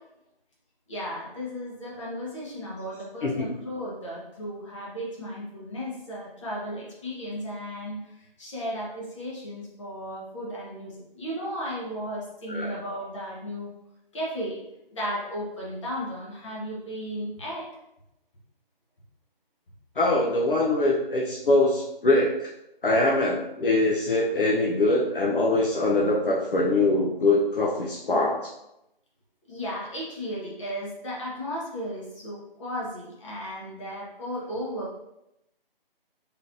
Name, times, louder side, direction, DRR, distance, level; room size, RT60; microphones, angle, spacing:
voice 1, 0.9-13.7 14.1-14.6 14.9-17.7 29.5-35.0, equal, 30° left, -5 dB, 1.3 m, -35 dB
voice 2, 20.0-22.5 22.8-28.4, left 2 dB, 65° left, -3 dB, 0.8 m, -23 dB
3.9 x 3.8 x 2.6 m, 0.86 s
figure-of-eight pair, 160°, 29 cm